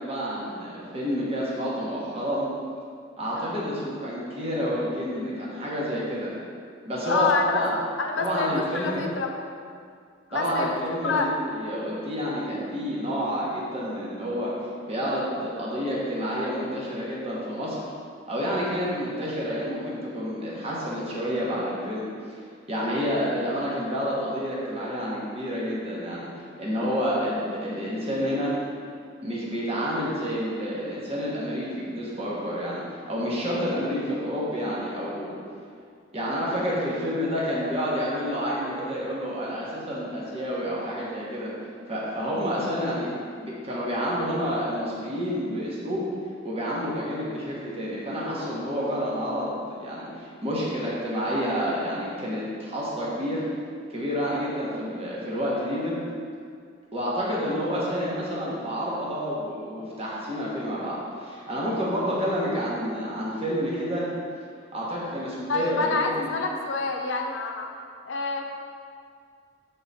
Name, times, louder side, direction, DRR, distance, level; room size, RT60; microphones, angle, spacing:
voice 1, 0.0-2.5 3.2-6.3 6.8-7.7 8.2-9.0 10.3-17.8 18.3-22.4 22.7-26.3 26.6-28.5 29.2-35.3 36.1-41.5 41.9-46.0 46.4-53.4 53.9-56.0 56.9-64.1 64.7-66.3, equal, 30° right, -6 dB, 1.2 m, -29 dB
voice 2, 7.1-7.6 8.0-9.4 10.3-10.7 11.0-11.3 65.5-67.7 68.0-68.4, left 4 dB, 75° left, 3 dB, 0.6 m, -27 dB
7.2 x 3.8 x 4.1 m, 2.2 s
head